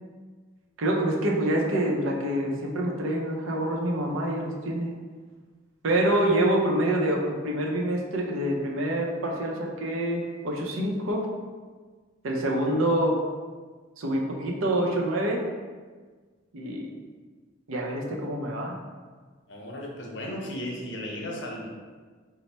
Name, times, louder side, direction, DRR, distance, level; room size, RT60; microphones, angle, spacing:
voice 1, 0.8-4.9 5.8-11.3 12.2-13.2 14.0-15.4 16.5-16.9 17.7-18.7, right 1 dB, 85° right, -1 dB, 0.6 m, -26 dB
voice 2, 19.5-21.7, left 1 dB, 60° left, 0 dB, 0.6 m, -35 dB
3.2 x 2.0 x 4.0 m, 1.5 s
head